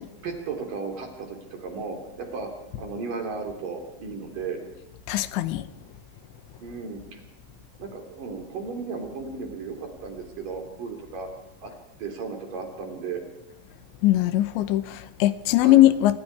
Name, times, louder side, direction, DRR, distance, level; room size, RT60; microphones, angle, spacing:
voice 1, 0.2-2.5 2.8-4.6 6.6-7.2 7.8-11.3 11.6-11.7 12.0-13.2 15.6-15.9, right 4 dB, 50° right, 4.7 m, -35 dB
voice 2, 5.1-5.6 14.0-16.2, left 15 dB, 85° left, 3.2 m, -20 dB
27.5 x 25.0 x 4.8 m
omnidirectional pair, 5.1 m